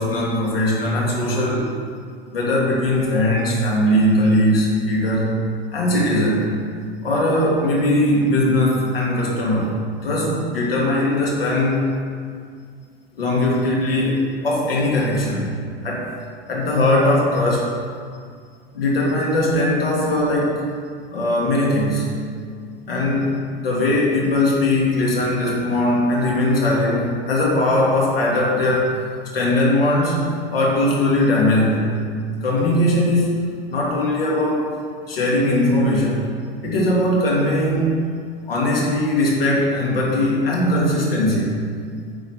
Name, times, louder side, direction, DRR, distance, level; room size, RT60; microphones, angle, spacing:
voice 1, 0.0-1.7 2.3-5.3 5.7-6.5 7.0-11.9 13.2-15.5 15.8-16.1 16.5-17.7 18.7-20.5 21.1-22.1 22.9-23.3 23.6-29.0 29.3-31.9 32.4-33.4 33.7-34.7 35.1-36.3 36.6-38.0 38.5-41.5, left 1 dB, 70° left, -4 dB, 3.0 m, -19 dB
10.5 x 6.3 x 6.5 m, 2.1 s
figure-of-eight pair, 85°, 30 cm